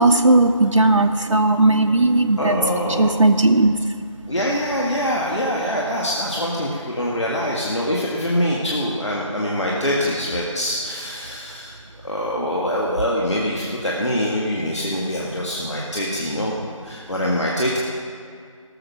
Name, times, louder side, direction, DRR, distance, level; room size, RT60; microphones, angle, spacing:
voice 1, 0.0-3.8, right 2 dB, 70° right, 4 dB, 0.7 m, -17 dB
voice 2, 2.4-3.2 4.3-11.7 12.0-16.6 16.8-17.8, equal, 60° left, -4 dB, 1.7 m, -24 dB
18.0 x 7.0 x 6.1 m, 2.2 s
figure-of-eight pair, 180°, 17 cm